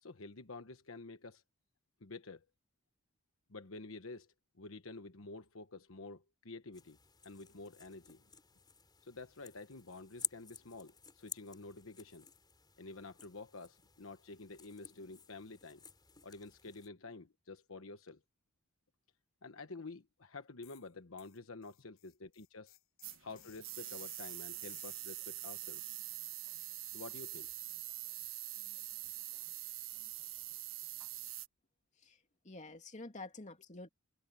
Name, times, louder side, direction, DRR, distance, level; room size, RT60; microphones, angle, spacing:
voice 1, 0.0-1.4 2.0-2.5 3.5-7.0 7.2-8.2 9.0-12.3 12.8-15.8 16.2-18.2 19.4-22.8 23.2-25.9 26.9-27.5, left 3 dB, 70° left, 1.2 m, -49 dB
sound 1, 6.7-16.9, left 6 dB, 20° left, 3.6 m, -50 dB
sound 2, 20.6-20.9 21.2-25.2, left 16 dB, 85° left, 5.9 m, -60 dB
sound 3, 23.0-31.5, right 15 dB, 70° right, 1.5 m, -44 dB
voice 2, 32.4-33.9, left 2 dB, 35° left, 2.7 m, -48 dB
head